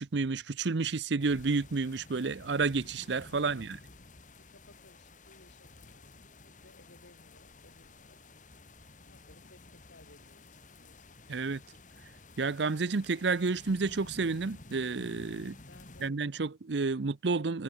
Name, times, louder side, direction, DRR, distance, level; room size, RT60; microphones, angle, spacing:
voice 1, 0.0-3.8 11.3-11.6 12.4-15.6 16.0-17.6, right 4 dB, 75° right, 0.7 m, -30 dB
sound 1, 1.2-16.1, left 2 dB, 45° left, 2.5 m, -53 dB
voice 2, 4.4-8.3 9.1-11.1 15.7-16.3, left 2 dB, 85° left, 5.1 m, -60 dB
head